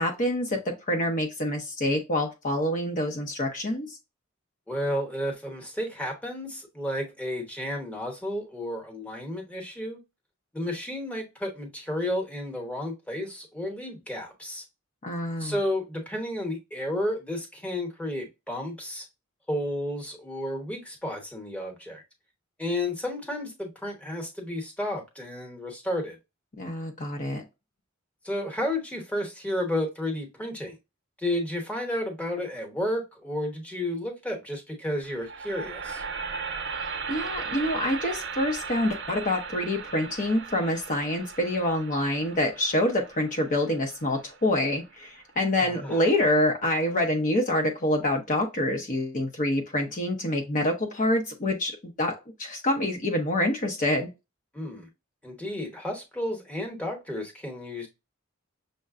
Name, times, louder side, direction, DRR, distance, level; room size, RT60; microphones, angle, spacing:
voice 1, 0.0-4.0 15.0-15.6 26.6-27.4 37.1-54.1, left 1 dB, 40° left, 0.7 m, -26 dB
voice 2, 4.7-10.0 10.5-14.6 15.4-19.1 19.5-22.0 22.6-26.2 28.2-30.8 31.2-36.0 45.6-46.0 54.5-54.9 55.2-57.9, left 1 dB, 5° left, 1.0 m, -32 dB
sound 1, 35.0-45.2, right 5 dB, 60° right, 0.5 m, -37 dB
6.4 x 2.2 x 2.4 m
head